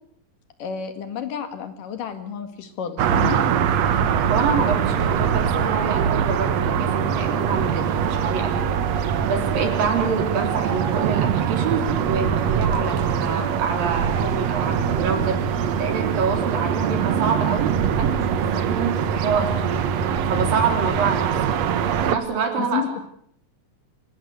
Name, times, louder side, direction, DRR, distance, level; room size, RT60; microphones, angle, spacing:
voice 1, 0.6-3.4 22.6-22.9, left 8 dB, 70° left, 9 dB, 3.5 m, -30 dB
sound 1, 3.0-22.2, right 8 dB, 60° right, 2.1 m, -23 dB
voice 2, 4.3-19.9 20.3-21.4 22.0-22.8, right 5 dB, 75° right, 4 dB, 5.5 m, -27 dB
26.5 x 18.0 x 8.0 m, 0.69 s
omnidirectional pair, 4.1 m